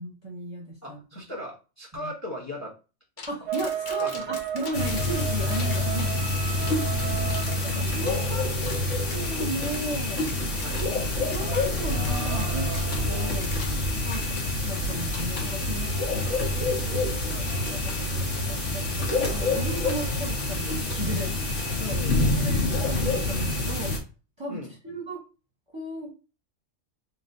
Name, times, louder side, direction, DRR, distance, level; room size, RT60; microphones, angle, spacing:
voice 1, 0.0-1.0 3.3-6.3 6.9-7.3 7.6-8.5 9.1-10.2 11.1-12.7 13.0-13.5 14.0-14.2 14.6-16.3 17.2-22.0 22.4-23.9 24.4-25.2 25.7-26.1, right 1 dB, 25° right, -2 dB, 0.9 m, -36 dB
voice 2, 0.8-2.7 3.2-3.3 4.0-4.2 10.6-10.9 14.1-14.4 16.9-17.3 21.9-22.5 24.5-24.7, left 1 dB, 15° left, 0 dB, 0.9 m, -38 dB
sound 1, 3.2-9.3 9.7-9.9 10.3-11.0 11.3-11.6 12.0-13.8 14.1-14.3 15.1-15.6, left 4 dB, 50° left, 0.7 m, -42 dB
sound 2, 3.5-13.3, right 10 dB, 55° right, 0.7 m, -36 dB
sound 3, 4.7-24.0, left 2 dB, 65° left, 1.4 m, -27 dB
3.8 x 3.4 x 2.7 m, 0.32 s
omnidirectional pair, 1.3 m